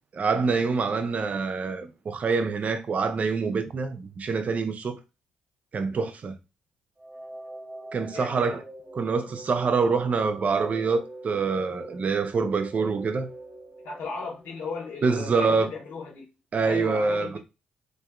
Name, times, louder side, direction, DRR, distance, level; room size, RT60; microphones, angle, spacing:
voice 1, 0.1-5.0 5.7-6.3 7.9-8.6 9.0-13.3 15.0-15.7 16.5-17.4, right 4 dB, 45° right, 0.5 m, -26 dB
sound 1, 7.0-14.9, right 2 dB, 25° right, 0.9 m, -43 dB
voice 2, 8.1-8.6 13.8-16.3 16.6-17.4, left 4 dB, 65° left, 1.0 m, -36 dB
3.5 x 2.6 x 2.3 m
hypercardioid pair, 45°, 4 cm